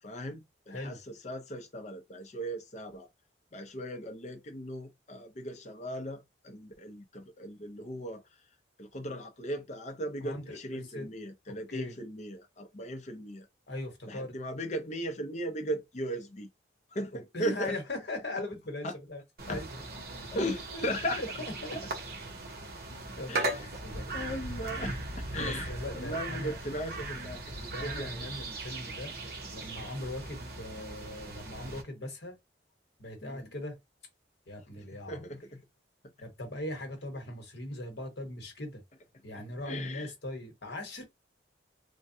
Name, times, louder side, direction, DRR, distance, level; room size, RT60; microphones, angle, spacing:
voice 1, 0.0-3.1 3.5-8.5 8.8-13.5 14.0-16.5 16.9-17.8 18.4-18.5 18.8-18.9 19.5-19.6 20.3-21.2 21.7-21.9 23.3-23.7 24.1-28.2 33.2-33.5 34.8-35.6 36.0-36.1 39.4-40.1, equal, 35° left, 0.6 m, -38 dB
voice 2, 10.7-11.1 11.7-11.9 13.7-14.3 17.3-19.2 19.5-19.7 20.1-20.3 20.7-20.9 21.2-21.3 21.6-21.8 23.2-24.3 25.4-26.5 27.7-29.1 29.5-32.4 33.0-33.8 34.5-35.3 36.2-38.8 39.2-41.0, left 1 dB, 60° left, 1.1 m, -39 dB
sound 1, 19.4-31.8, right 2 dB, 50° right, 1.0 m, -38 dB
3.4 x 2.2 x 2.7 m
head